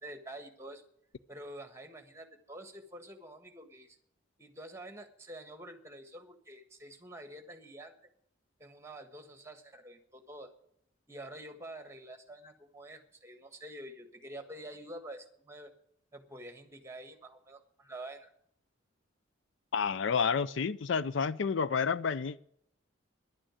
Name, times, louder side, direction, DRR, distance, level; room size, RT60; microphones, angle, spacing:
voice 1, 0.0-0.8 1.3-4.0 4.4-7.9 8.6-10.5 11.1-15.7 16.1-18.3, right 1 dB, 15° right, 1.4 m, -47 dB
voice 2, 19.7-22.4, left 6 dB, 65° left, 0.5 m, -30 dB
11.0 x 8.9 x 8.9 m
head